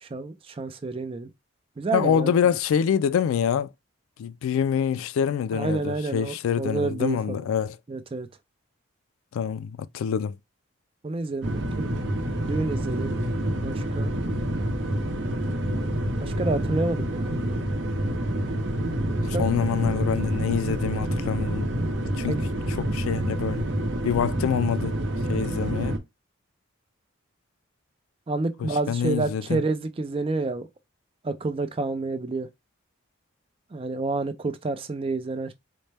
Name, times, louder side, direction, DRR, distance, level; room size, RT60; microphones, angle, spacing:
voice 1, 0.0-1.3 1.8-2.3 5.5-7.5 7.9-8.3 11.0-11.9 12.4-13.1 13.6-14.1 16.2-17.6 19.3-19.4 22.3-22.5 28.3-30.7 31.2-32.5 33.7-35.5, right 3 dB, 25° right, 0.4 m, -29 dB
voice 2, 1.9-3.7 4.2-7.8 9.3-10.3 19.2-21.7 22.2-22.4 22.8-23.6 24.0-24.9 25.3-25.9 28.6-29.6, left 7 dB, 85° left, 0.3 m, -26 dB
sound 1, 11.4-26.0, right 1 dB, 55° right, 0.7 m, -27 dB
4.1 x 2.1 x 3.3 m
head